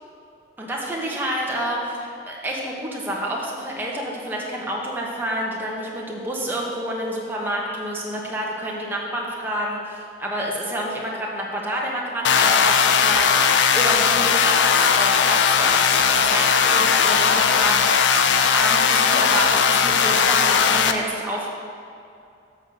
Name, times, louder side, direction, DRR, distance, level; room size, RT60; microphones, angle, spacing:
voice 1, 0.6-18.0 18.5-21.5, right 1 dB, 10° right, -3 dB, 1.1 m, -28 dB
sound 1, 12.2-20.9, left 6 dB, 80° left, 0.5 m, -18 dB
7.4 x 6.3 x 5.2 m, 2.6 s
head